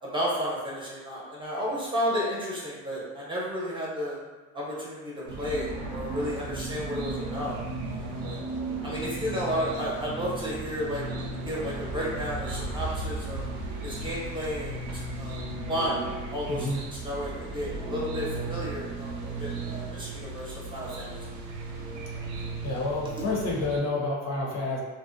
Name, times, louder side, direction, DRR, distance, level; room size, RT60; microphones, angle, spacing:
voice 1, 0.0-4.2 4.5-8.4 8.8-11.0 11.4-13.4 13.8-14.8 15.2-15.4 15.7-19.1 19.4-21.1, equal, 15° right, -6 dB, 0.7 m, -32 dB
sound 1, 5.3-23.8, right 2 dB, 65° right, 0.6 m, -35 dB
voice 2, 16.5-16.8 22.6-24.8, left 2 dB, 60° left, -3 dB, 0.7 m, -29 dB
2.5 x 2.1 x 2.5 m, 1.2 s
cardioid pair, 105°, 31 cm